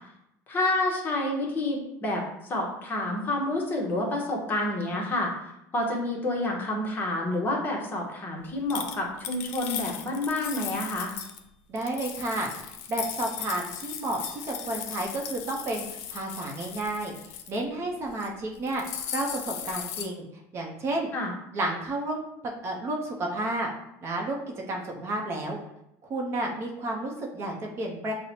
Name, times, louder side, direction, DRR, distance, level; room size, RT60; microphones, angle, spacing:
voice 1, 0.5-5.3 5.7-11.1 21.1-21.3, left 2 dB, 25° left, -1 dB, 0.8 m, -29 dB
sound 1, 8.7-11.4 11.8-17.6 18.0-18.3 18.5-20.1, left 9 dB, 90° left, 0.4 m, -37 dB
voice 2, 11.7-12.5 12.9-17.1 17.5-18.8 19.1-20.2 20.5-21.1 21.5-23.7 24.0-24.4 24.7-25.6 26.0-28.1, right 1 dB, 35° right, 0 dB, 0.6 m, -31 dB
5.5 x 2.1 x 2.7 m, 0.82 s
cardioid pair, 145°, 8 cm